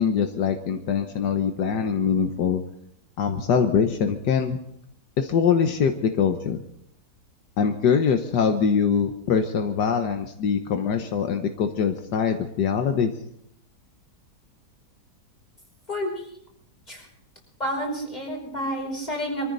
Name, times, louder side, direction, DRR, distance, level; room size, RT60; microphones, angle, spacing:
voice 1, 0.0-2.6 3.2-4.6 5.2-6.6 7.6-13.1, left 6 dB, 80° left, 6 dB, 1.6 m, -23 dB
voice 2, 17.6-19.5, equal, 25° left, -1 dB, 5.4 m, -29 dB
24.0 x 14.5 x 4.0 m, 0.72 s
omnidirectional pair, 1.8 m